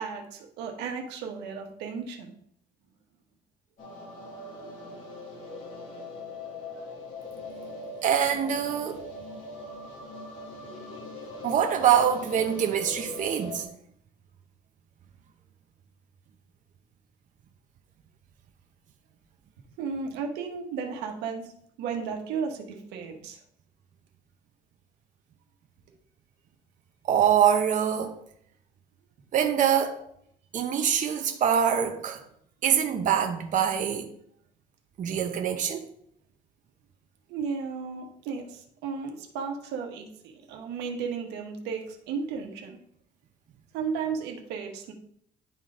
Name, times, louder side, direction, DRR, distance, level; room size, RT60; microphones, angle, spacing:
voice 1, 0.0-2.3 5.1-5.2 6.3-6.4 19.8-21.5 21.8-23.4 37.3-42.8 43.7-44.9, right 5 dB, 90° right, 1.3 m, -34 dB
sound 1, 3.8-13.6, left 2 dB, 50° left, 2.8 m, -41 dB
voice 2, 8.0-9.0 11.4-13.6 27.1-28.2 29.3-30.0 30.5-32.2 32.6-34.1 35.0-35.8, right 8 dB, 50° right, 0.8 m, -24 dB
11.0 x 3.8 x 3.8 m
cardioid pair, 110°, 17 cm